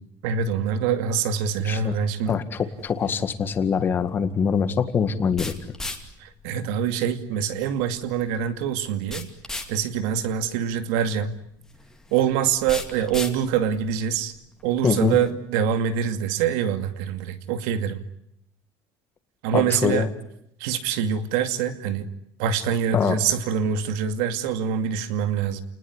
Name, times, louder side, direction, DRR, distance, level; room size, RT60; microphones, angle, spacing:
voice 1, 0.2-2.4 6.2-9.3 9.7-11.3 12.1-14.4 14.6-18.0 19.4-20.1 20.6-22.1 22.4-25.6, right 8 dB, 85° right, 10 dB, 2.4 m, -25 dB
voice 2, 1.6-2.0 2.3-5.5 14.8-15.2 19.5-20.1 22.9-23.2, left 6 dB, 25° left, 10 dB, 1.9 m, -24 dB
sound 1, 2.7-15.3, left 2 dB, 5° left, 2.6 m, -40 dB
29.5 x 20.0 x 9.8 m, 0.77 s
cardioid pair, 160°, 8 cm